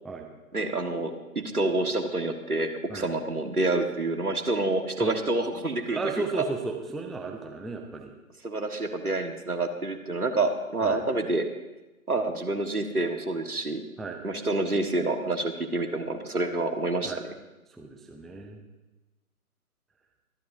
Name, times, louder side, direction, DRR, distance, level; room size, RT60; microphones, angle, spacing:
voice 1, 0.5-1.1 1.5-6.0 6.3-6.4 8.4-11.5 12.1-13.8 14.2-17.3, right 2 dB, 85° right, 5 dB, 1.7 m, -28 dB
voice 2, 5.9-8.1 10.8-11.0 14.0-14.2 17.0-17.2 17.7-18.6, right 3 dB, ahead, 3 dB, 0.4 m, -34 dB
24.0 x 10.5 x 2.7 m, 1.1 s
figure-of-eight pair, 140°, 44 cm